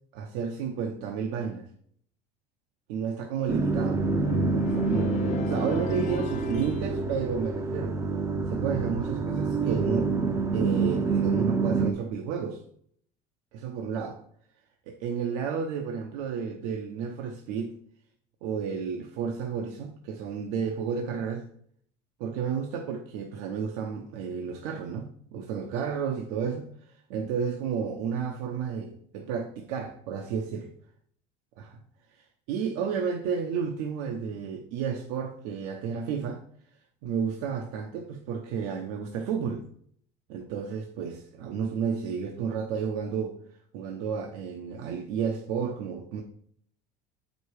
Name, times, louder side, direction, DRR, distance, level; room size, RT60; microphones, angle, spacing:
voice 1, 0.1-1.7 2.9-4.0 4.4-8.0 8.5-10.1 10.5-12.6 13.5-14.2 14.9-17.8 18.4-21.4 22.2-30.7 31.6-31.8 32.1-36.4 37.0-39.7 40.3-43.4 43.7-46.2, right 6 dB, 80° right, 2 dB, 0.9 m, -32 dB
sound 1, 3.5-11.9, right 4 dB, 15° right, 0.6 m, -27 dB
sound 2, 3.9-6.9, left 8 dB, 45° left, 0.6 m, -36 dB
7.8 x 5.2 x 4.8 m, 0.63 s
cardioid pair, 150°, 18 cm